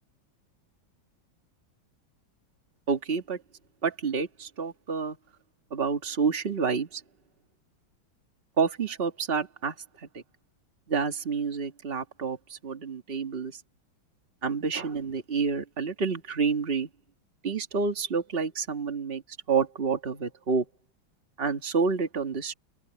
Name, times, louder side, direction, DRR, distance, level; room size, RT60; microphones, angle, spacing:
voice 1, 2.9-3.4 3.8-5.2 5.7-7.0 8.6-9.7 10.0-10.2 10.9-13.6 14.4-16.9 17.4-19.2 19.5-20.7 21.4-22.5, right 5 dB, 30° right, 2.0 m, -28 dB
open air
omnidirectional pair, 2.2 m